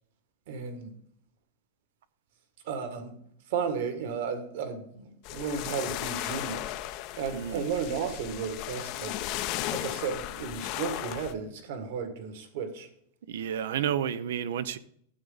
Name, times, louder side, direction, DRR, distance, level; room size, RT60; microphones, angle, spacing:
voice 1, 0.5-0.9 2.7-3.1 3.5-6.7 7.2-9.1 9.7-12.9, right 6 dB, 60° right, 2.0 m, -34 dB
sound 1, 5.2-11.3, left 14 dB, 45° left, 0.7 m, -36 dB
voice 2, 7.3-7.7 13.3-14.8, right 9 dB, 80° right, 0.7 m, -31 dB
12.5 x 7.8 x 4.0 m
supercardioid pair, 155°, 0 cm